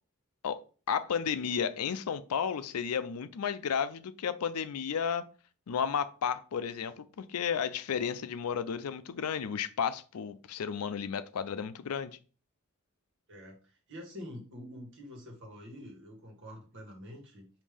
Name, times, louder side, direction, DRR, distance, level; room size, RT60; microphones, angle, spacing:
voice 1, 0.9-5.2 5.7-12.2, left 7 dB, 85° left, 0.4 m, -33 dB
voice 2, 13.3-17.5, left 1 dB, 60° right, 1.5 m, -46 dB
5.2 x 2.7 x 3.4 m
head